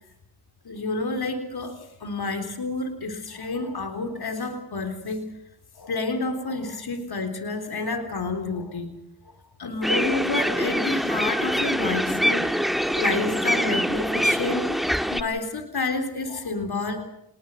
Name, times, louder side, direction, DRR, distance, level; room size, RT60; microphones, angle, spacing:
voice 1, 0.7-1.7 2.0-5.3 5.8-8.9 9.6-12.5 12.9-14.6 15.1-17.0, left 3 dB, 70° left, 6 dB, 3.9 m, -29 dB
sound 1, 9.8-15.2, equal, ahead, 1.7 m, -24 dB
29.0 x 20.5 x 5.6 m, 0.78 s
cardioid pair, 45°, 39 cm